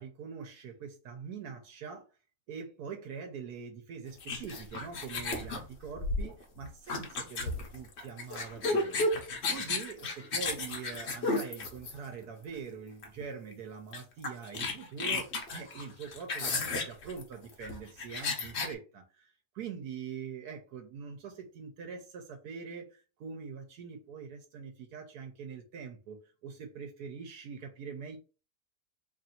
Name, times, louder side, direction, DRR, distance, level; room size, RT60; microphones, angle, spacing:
voice 1, 0.0-2.1 2.5-9.0 9.5-26.2 26.4-28.2, right 6 dB, 80° right, 1.2 m, -43 dB
sound 1, 4.2-12.2 13.0-13.2 13.5-13.6 13.9-18.7, left 3 dB, 50° left, 1.0 m, -33 dB
3.0 x 2.6 x 4.2 m
omnidirectional pair, 1.7 m